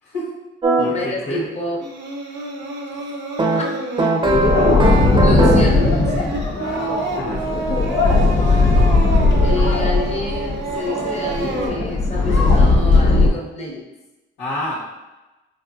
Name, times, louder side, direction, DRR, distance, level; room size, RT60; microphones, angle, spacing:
voice 1, 0.0-0.3 0.8-1.5 2.3-2.5 7.1-7.6 14.4-14.8, left 1 dB, 90° left, -7 dB, 1.2 m, -29 dB
sound 1, 0.6-0.9 3.4-5.8, right 3 dB, 25° right, 0.6 m, -19 dB
voice 2, 0.9-1.8 2.9-3.0 3.5-3.7 4.8-6.5 8.5-8.6 9.4-13.9, left 2 dB, 35° left, -1 dB, 0.9 m, -29 dB
Singing, 1.8-11.7, right 3 dB, 65° right, 0.6 m, -29 dB
sound 2, 4.2-13.3, left 3 dB, 65° left, 1.0 m, -17 dB
4.8 x 2.6 x 2.4 m, 1.1 s
cardioid pair, 90°, 20 cm